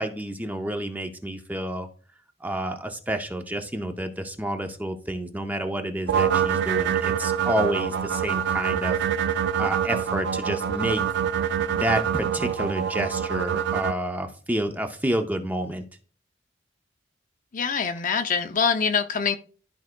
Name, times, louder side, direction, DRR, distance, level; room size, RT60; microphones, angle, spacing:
voice 1, 0.0-1.9 2.4-9.0 9.6-11.0 11.7-15.9, right 1 dB, 10° right, 5 dB, 0.6 m, -29 dB
sound 1, 6.1-13.9, right 8 dB, 60° right, 0.3 m, -25 dB
voice 2, 17.5-19.4, left 6 dB, 40° left, 8 dB, 0.5 m, -24 dB
12.5 x 4.7 x 2.2 m, 0.40 s
head